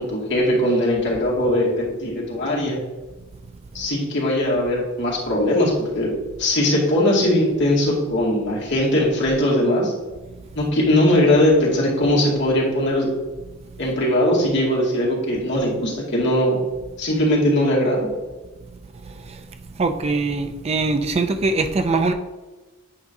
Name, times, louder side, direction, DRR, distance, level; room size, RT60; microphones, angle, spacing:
voice 1, 0.0-2.8 3.7-6.1 6.4-9.9 10.5-13.1 13.8-16.6 17.0-18.1, left 1 dB, 60° left, -4 dB, 2.2 m, -20 dB
voice 2, 19.8-22.1, right 3 dB, 30° right, 8 dB, 0.4 m, -22 dB
8.5 x 5.2 x 2.7 m, 1.2 s
head